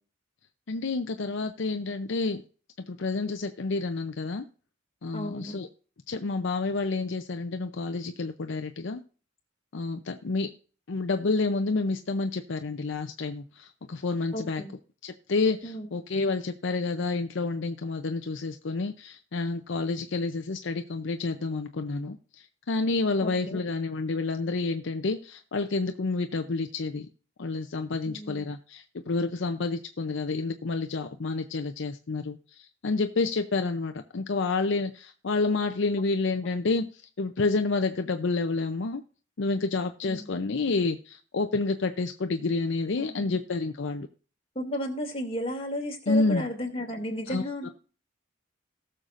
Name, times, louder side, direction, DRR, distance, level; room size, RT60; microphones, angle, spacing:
voice 1, 0.7-2.4 2.9-4.4 5.0-5.7 6.1-9.0 9.7-10.5 10.9-14.6 15.0-27.1 27.4-39.0 39.4-44.1 46.1-46.5 47.3-47.7, left 3 dB, 70° left, 7 dB, 0.6 m, -29 dB
voice 2, 5.1-5.6 14.3-14.7 15.6-15.9 23.2-23.6 28.1-28.4 40.0-40.4 43.0-43.4 44.5-47.7, equal, 30° left, 1 dB, 2.5 m, -33 dB
19.0 x 6.6 x 2.5 m, 0.40 s
head